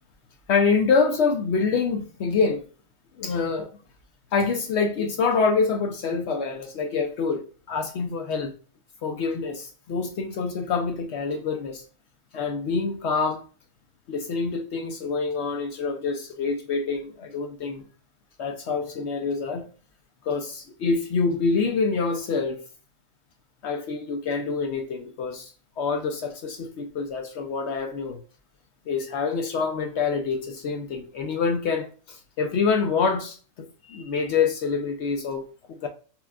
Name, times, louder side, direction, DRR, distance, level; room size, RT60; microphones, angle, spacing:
voice 1, 0.5-2.7 3.2-3.7 4.3-8.5 9.0-11.8 12.3-13.4 14.1-17.8 18.4-19.7 20.2-22.6 23.6-28.2 28.9-35.9, left 5 dB, 65° left, 0.7 m, -26 dB
5.7 x 2.2 x 2.2 m
omnidirectional pair, 1.5 m